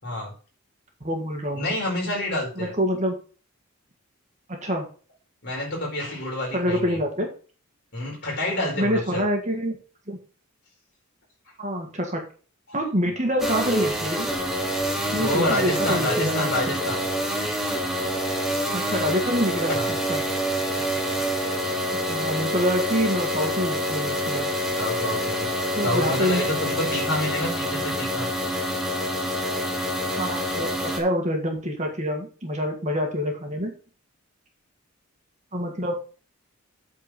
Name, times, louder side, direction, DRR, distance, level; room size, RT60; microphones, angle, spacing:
voice 1, 0.0-0.3 1.6-2.7 5.4-7.0 7.9-9.2 12.7-12.8 15.0-17.1 19.7-19.9 24.8-25.5 25.8-28.3, left 1 dB, 50° left, -2 dB, 4.4 m, -28 dB
voice 2, 1.0-1.7 2.6-3.2 4.5-4.8 6.5-7.3 8.8-9.8 10.1-10.2 11.6-12.2 12.7-14.3 15.1-16.5 18.7-20.2 22.1-24.5 25.8-26.4 30.2-33.7 35.5-36.0, equal, 30° right, 2 dB, 1.6 m, -26 dB
sound 1, 13.4-31.0, equal, ahead, 1.2 m, -27 dB
8.4 x 4.6 x 5.8 m, 0.38 s
head